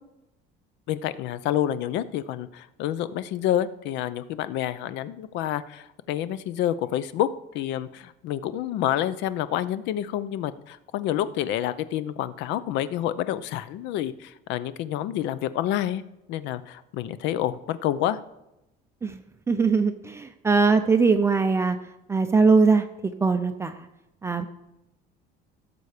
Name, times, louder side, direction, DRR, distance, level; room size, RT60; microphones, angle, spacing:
voice 1, 0.9-16.0 16.3-18.2, left 12 dB, 70° left, 15 dB, 0.6 m, -28 dB
voice 2, 19.5-21.8 22.1-22.8 23.2-23.9 24.2-24.5, right 4 dB, 15° right, 7 dB, 0.5 m, -21 dB
16.0 x 6.9 x 5.0 m, 0.92 s
cardioid pair, 160°, 19 cm